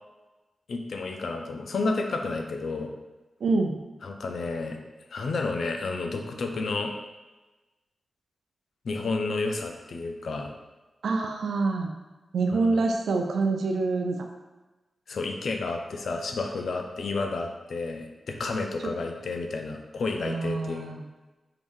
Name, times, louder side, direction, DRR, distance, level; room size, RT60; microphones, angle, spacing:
voice 1, 0.7-2.9 4.0-4.8 5.1-6.9 8.8-10.5 12.5-12.8 15.1-20.9, left 3 dB, 70° left, 4 dB, 0.5 m, -31 dB
voice 2, 3.4-3.8 11.0-11.9 12.3-14.3 20.2-21.0, right 3 dB, 85° right, 3 dB, 0.5 m, -26 dB
4.8 x 2.6 x 3.6 m, 1.1 s
wide cardioid pair, 105°, 0 cm